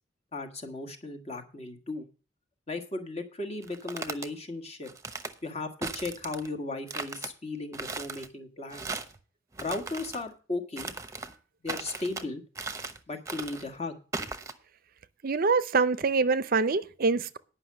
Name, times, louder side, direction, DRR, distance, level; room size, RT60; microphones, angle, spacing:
voice 1, 0.3-2.1 2.7-4.9 5.4-8.9 9.6-10.9 11.6-12.4 13.1-14.0, left 2 dB, 35° left, 1.5 m, -36 dB
sound 1, 3.6-4.3 4.9-5.3 5.8-6.5 6.9-7.3 7.7-8.3 8.7-9.2 9.5-10.2 10.8-11.3 11.7-12.3 12.6-13.0 13.3-13.7 14.1-14.5, right 3 dB, 15° right, 0.9 m, -37 dB
voice 2, 15.2-17.4, right 4 dB, 50° right, 0.5 m, -25 dB
9.9 x 5.7 x 7.4 m
head